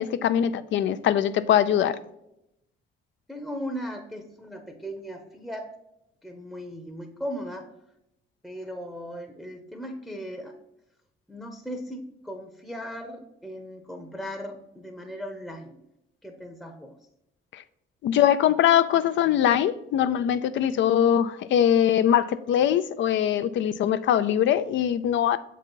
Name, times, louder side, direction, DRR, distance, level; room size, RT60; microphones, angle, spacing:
voice 1, 0.0-2.0 18.0-25.4, left 10 dB, 70° left, 0.4 m, -22 dB
voice 2, 3.3-5.7 6.2-7.7 8.4-10.5 11.3-15.7 16.2-16.9, equal, ahead, 0.7 m, -37 dB
7.0 x 4.0 x 4.5 m
cardioid pair, 90°, 20 cm